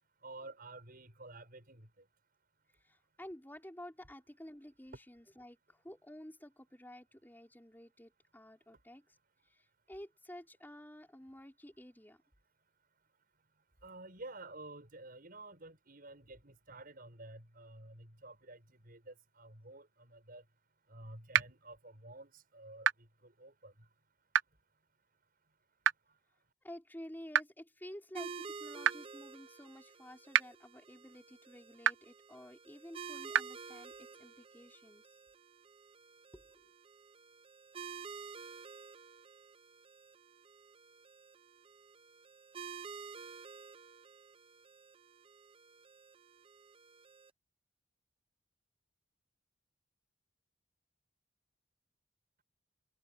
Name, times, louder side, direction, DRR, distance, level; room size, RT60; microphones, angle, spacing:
voice 1, 0.2-1.9 13.8-20.4 20.9-22.9 23.2-23.7, right 2 dB, 50° right, 6.7 m, -51 dB
voice 2, 2.8-9.2 9.4-12.2 26.6-35.2 36.3-36.7, left 1 dB, 10° left, 3.8 m, -52 dB
sound 1, 21.3-21.4 22.8-22.9 24.3-24.4 25.8-25.9 27.3-27.4 28.8-28.9 30.3-30.4 31.8-31.9 33.3-33.4, right 9 dB, 70° right, 0.5 m, -26 dB
sound 2, 28.1-47.3, right 5 dB, 30° right, 0.7 m, -51 dB
head